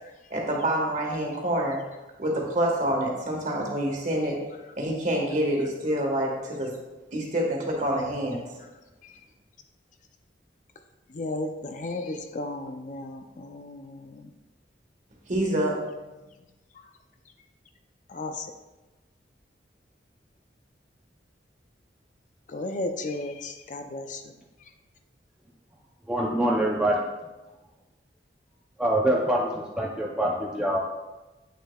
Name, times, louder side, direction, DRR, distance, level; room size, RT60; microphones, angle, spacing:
voice 1, 0.3-1.8 2.2-4.4 4.8-6.7 7.1-8.4 15.3-15.8, right 1 dB, 45° right, -1 dB, 1.4 m, -27 dB
voice 2, 11.1-14.3 18.1-18.5 22.5-24.3, left 2 dB, 45° left, 6 dB, 0.5 m, -34 dB
voice 3, 26.1-27.0 28.8-30.8, right 1 dB, 5° right, -3 dB, 0.5 m, -25 dB
8.3 x 6.4 x 2.3 m, 1.1 s
head